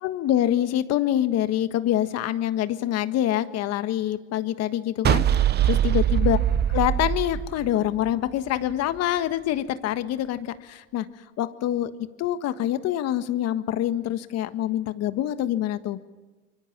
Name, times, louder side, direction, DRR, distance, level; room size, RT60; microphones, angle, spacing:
voice 1, 0.0-6.4 6.7-11.0 11.4-11.9 12.2-16.0, left 12 dB, 55° left, 11 dB, 1.5 m, -25 dB
sound 1, 5.0-8.3, right 10 dB, 30° right, 0.8 m, -22 dB
25.0 x 23.5 x 7.4 m, 1.2 s
supercardioid pair, 100°, 31 cm